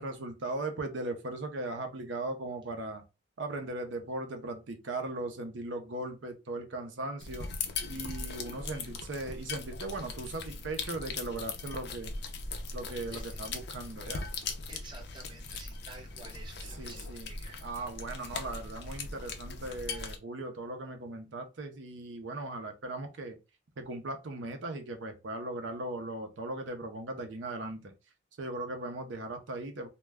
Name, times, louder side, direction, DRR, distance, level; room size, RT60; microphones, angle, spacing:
voice 1, 0.0-3.0 3.4-7.5 7.9-12.1 12.7-14.3 16.6-17.3 17.6-23.4 23.8-27.9 28.4-29.9, right 2 dB, 70° right, 0.6 m, -38 dB
sound 1, 7.2-20.2, left 4 dB, 60° left, 0.5 m, -39 dB
voice 2, 13.1-13.5 14.7-17.6, right 3 dB, 25° right, 0.6 m, -51 dB
2.2 x 2.2 x 3.3 m
head